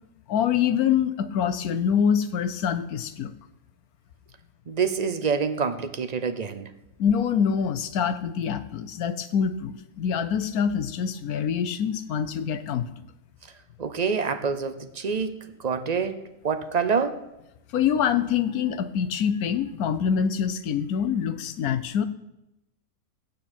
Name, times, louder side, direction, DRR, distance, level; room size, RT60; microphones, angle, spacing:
voice 1, 0.3-3.3 7.0-12.9 17.7-22.0, left 8 dB, 80° left, 1.2 m, -25 dB
voice 2, 4.7-6.7 13.8-17.2, right 6 dB, 40° right, 0.6 m, -27 dB
15.0 x 9.2 x 4.4 m
omnidirectional pair, 1.5 m